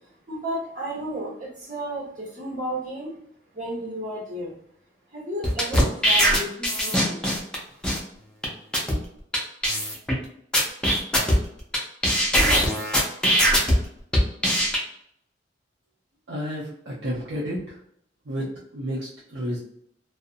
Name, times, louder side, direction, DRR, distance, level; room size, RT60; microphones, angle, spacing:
voice 1, 0.3-3.1 3.5-4.6 5.1-7.2, right 1 dB, 45° right, -4 dB, 1.1 m, -33 dB
sound 1, 5.4-7.5 7.8-8.0 8.4-8.5 8.7-8.9 9.3-9.4 9.6-10.1 10.5-11.8 12.0-13.7 14.1-14.8, equal, 5° left, 0.5 m, -20 dB
voice 2, 16.3-17.8 18.3-19.6, equal, 70° right, -6 dB, 0.6 m, -31 dB
2.5 x 2.0 x 2.6 m, 0.69 s
head